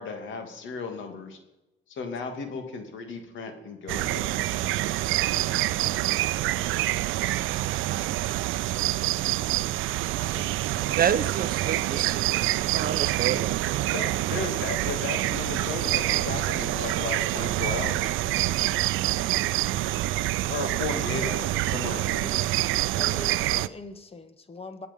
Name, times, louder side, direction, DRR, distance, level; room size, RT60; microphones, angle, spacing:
voice 1, 0.0-1.4 1.9-4.4 13.9-18.2 20.5-22.3, left 4 dB, 75° left, 5 dB, 2.6 m, -35 dB
sound 1, 3.9-23.7, right 16 dB, 90° right, 0.5 m, -26 dB
voice 2, 10.2-11.2 22.9-24.9, left 2 dB, 30° left, 10 dB, 1.6 m, -42 dB
voice 3, 11.0-13.6 20.6-20.7, right 8 dB, 50° right, 13 dB, 0.8 m, -30 dB
21.0 x 8.5 x 5.5 m, 0.97 s
cardioid pair, 90°, 20 cm